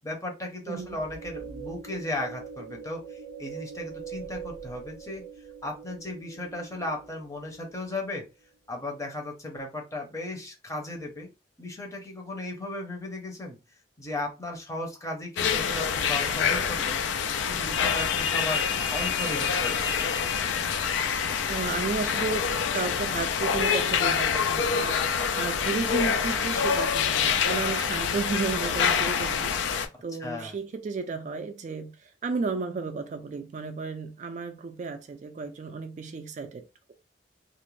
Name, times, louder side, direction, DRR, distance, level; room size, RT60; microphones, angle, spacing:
voice 1, 0.0-5.2 5.6-8.2 8.7-11.3 11.6-13.6 14.0-17.0 17.5-19.9 30.2-30.6, left 2 dB, 15° left, 0.6 m, -36 dB
sound 1, 0.8-8.1, right 6 dB, 50° left, 1.1 m, -42 dB
sound 2, 15.4-29.9, left 6 dB, 80° left, 0.4 m, -26 dB
voice 2, 21.5-36.9, right 4 dB, 40° right, 0.3 m, -33 dB
2.4 x 2.1 x 3.0 m
head